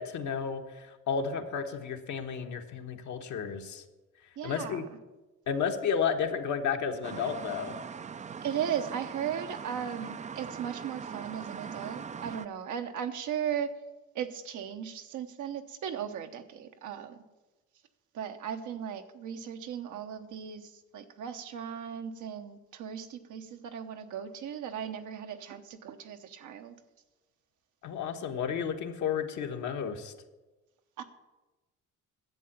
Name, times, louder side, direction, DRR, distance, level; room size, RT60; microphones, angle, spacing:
voice 1, 0.0-3.8 4.4-4.8 5.5-7.7 27.8-30.1, left 6 dB, 70° left, 4 dB, 1.3 m, -32 dB
voice 2, 4.4-4.9 8.4-13.8 14.1-17.2 18.1-26.8 31.0-31.1, right 8 dB, 80° right, 6 dB, 1.1 m, -37 dB
sound 1, 7.0-12.5, right 6 dB, 25° right, 0.4 m, -41 dB
11.0 x 7.7 x 7.3 m, 1.1 s
cardioid pair, 90°, 30 cm